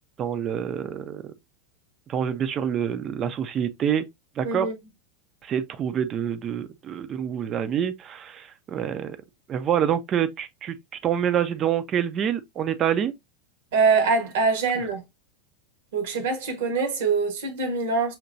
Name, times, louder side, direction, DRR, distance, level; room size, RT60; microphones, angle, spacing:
voice 1, 0.2-1.2 2.1-4.0 4.4-4.7 5.4-9.2 9.5-10.8 11.0-13.1, right 9 dB, 35° right, 0.6 m, -26 dB
voice 2, 4.4-4.8 13.7-15.0 15.9-18.1, right 4 dB, 60° right, 1.3 m, -24 dB
5.8 x 2.9 x 2.6 m
figure-of-eight pair, 90°, 0 cm